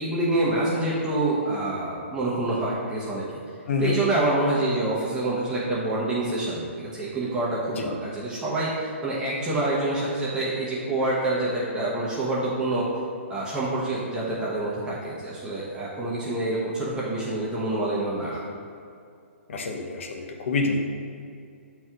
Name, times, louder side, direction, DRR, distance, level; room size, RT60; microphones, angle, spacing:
voice 1, 0.0-3.3 3.8-12.9 13.3-18.4, right 2 dB, 10° right, -8 dB, 1.1 m, -27 dB
voice 2, 3.7-4.0 7.8-7.9 19.5-20.8, left 4 dB, 65° left, 2 dB, 1.0 m, -27 dB
7.7 x 4.6 x 3.7 m, 2.5 s
hypercardioid pair, 145°, 7 cm